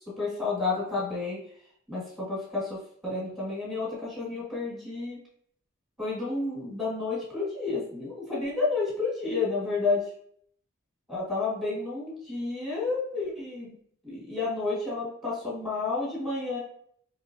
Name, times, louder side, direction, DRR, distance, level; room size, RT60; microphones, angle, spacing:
voice 1, 0.2-1.4 1.9-2.8 3.0-5.2 6.0-10.0 11.1-13.8 14.0-16.6, left 3 dB, ahead, -5 dB, 1.5 m, -30 dB
4.6 x 2.9 x 2.6 m, 0.64 s
head